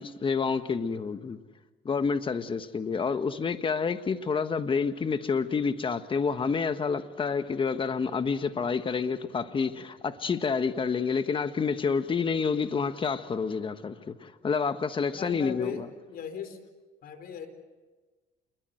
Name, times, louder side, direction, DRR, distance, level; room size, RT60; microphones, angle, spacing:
voice 1, 0.0-1.4 1.8-15.9, left 5 dB, 30° left, 1.5 m, -28 dB
voice 2, 15.1-15.8 16.1-16.6 17.0-17.5, left 7 dB, 65° left, 4.4 m, -37 dB
28.0 x 21.5 x 7.9 m
cardioid pair, 110°, 17 cm